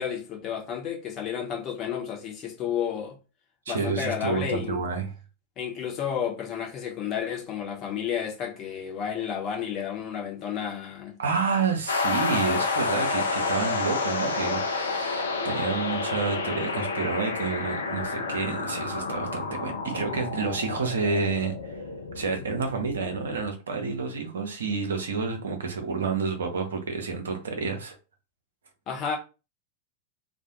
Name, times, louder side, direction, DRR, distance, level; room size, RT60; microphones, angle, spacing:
voice 1, 0.0-3.2 3.7-4.8 5.6-11.2 28.9-29.2, left 8 dB, 35° left, 0.8 m, -31 dB
voice 2, 3.7-5.1 11.2-21.8 22.1-28.0, right 5 dB, 65° right, 0.6 m, -29 dB
sound 1, 11.9-23.5, left 4 dB, 70° left, 0.4 m, -30 dB
2.4 x 2.1 x 2.9 m
figure-of-eight pair, 90°, 0 cm